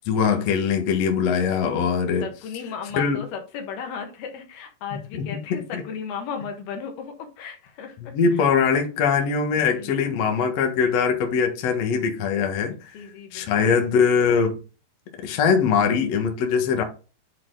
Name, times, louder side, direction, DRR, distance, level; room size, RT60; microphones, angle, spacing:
voice 1, 0.1-2.2 2.9-3.2 5.7-5.8 8.0-13.0 13.3-14.6 15.2-16.8, left 6 dB, 55° left, 1.9 m, -22 dB
voice 2, 2.2-8.5 9.2-9.3 9.6-9.9 12.9-13.7, left 6 dB, 70° left, 3.3 m, -35 dB
10.5 x 4.3 x 3.8 m
omnidirectional pair, 4.7 m